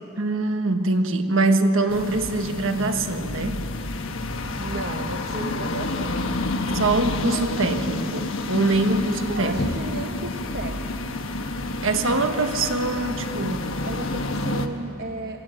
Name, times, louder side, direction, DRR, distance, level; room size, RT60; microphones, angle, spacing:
voice 1, 0.2-3.6 6.7-9.7 11.8-13.8, right 2 dB, 65° right, 6 dB, 1.5 m, -23 dB
sound 1, 1.9-14.7, left 2 dB, 65° left, 1.3 m, -29 dB
voice 2, 4.6-6.2 9.3-11.3 13.8-15.4, right 2 dB, 45° right, 3 dB, 1.0 m, -34 dB
24.5 x 18.0 x 7.8 m, 2.9 s
head